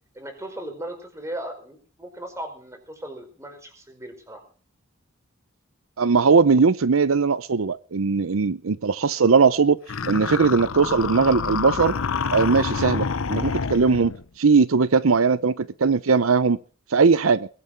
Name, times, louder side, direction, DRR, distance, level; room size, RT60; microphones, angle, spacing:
voice 1, 0.1-4.4, right 1 dB, 15° right, 5.0 m, -37 dB
voice 2, 6.0-9.8 10.1-11.9 12.3-14.1 14.4-16.6 16.9-17.5, right 5 dB, 80° right, 0.6 m, -19 dB
sound 1, 9.9-14.2, left 5 dB, 80° left, 0.8 m, -27 dB
22.0 x 8.7 x 5.8 m
head